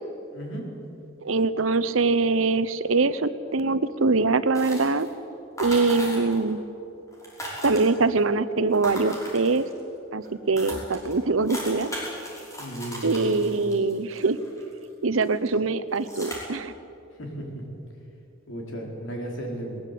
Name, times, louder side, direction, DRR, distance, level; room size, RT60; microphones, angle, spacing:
voice 1, 0.3-0.7 12.6-13.4 17.2-17.6 18.5-19.8, right 1 dB, 65° left, 0 dB, 4.7 m, -35 dB
voice 2, 1.2-5.1 5.6-6.6 7.6-9.7 10.1-11.9 13.0-14.4 15.0-16.7, right 3 dB, 75° right, 14 dB, 0.9 m, -23 dB
sound 1, 4.5-5.1 5.6-6.5 6.8-6.9 7.1-8.2 8.7-9.8 10.2-10.3 10.6-14.8 15.2-15.5 15.9-16.4, equal, 15° left, 5.5 m, -37 dB
21.0 x 19.5 x 8.5 m, 2.8 s
head